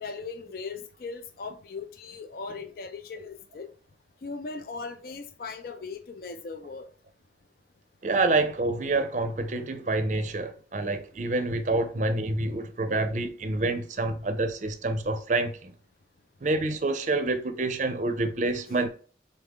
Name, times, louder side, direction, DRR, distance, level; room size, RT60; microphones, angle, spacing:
voice 1, 0.0-3.7 4.2-6.9, left 4 dB, 55° left, 0.4 m, -38 dB
voice 2, 8.0-15.7 16.4-18.9, right 2 dB, 40° right, 0.5 m, -27 dB
4.0 x 3.5 x 3.6 m
head